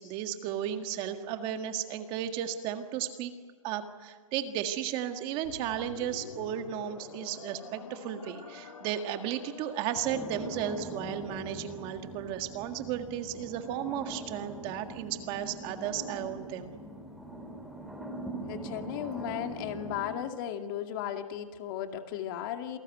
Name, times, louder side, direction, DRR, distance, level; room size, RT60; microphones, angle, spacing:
voice 1, 0.0-3.3 3.6-16.7, right 10 dB, 30° right, 7 dB, 1.8 m, -34 dB
sound 1, 5.4-11.9, left 6 dB, 80° left, 3.3 m, -47 dB
sound 2, 10.0-20.1, right 1 dB, ahead, 4.1 m, -42 dB
voice 2, 18.4-22.8, left 10 dB, 40° left, 6 dB, 2.3 m, -36 dB
28.5 x 19.0 x 9.2 m, 1.5 s
hypercardioid pair, 155°, 18 cm